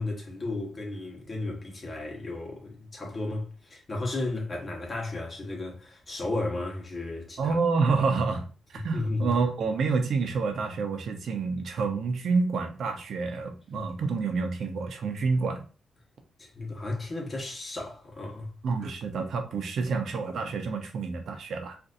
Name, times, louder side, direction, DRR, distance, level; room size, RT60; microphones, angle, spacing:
voice 1, 0.0-7.5 8.7-9.3 13.7-13.9 16.4-18.5, left 2 dB, 30° left, 1.1 m, -34 dB
voice 2, 7.4-15.6 18.6-21.8, right 4 dB, 65° right, 0.6 m, -28 dB
4.0 x 2.5 x 2.5 m
cardioid pair, 120°, 0 cm